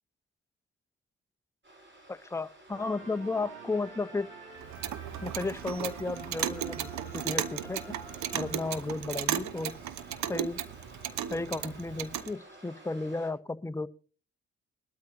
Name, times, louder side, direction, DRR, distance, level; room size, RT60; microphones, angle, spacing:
sound 1, 1.6-13.3, right 1 dB, 40° right, 6.6 m, -54 dB
voice 1, 2.1-4.3 5.2-7.8 8.3-9.8 10.3-10.6 11.3-13.9, left 3 dB, 10° left, 0.7 m, -34 dB
sound 2, 2.7-9.3, right 4 dB, 90° right, 2.9 m, -48 dB
Clock, 4.6-12.3, right 10 dB, 70° right, 1.0 m, -35 dB
20.0 x 12.5 x 2.7 m
hypercardioid pair, 40°, 30 cm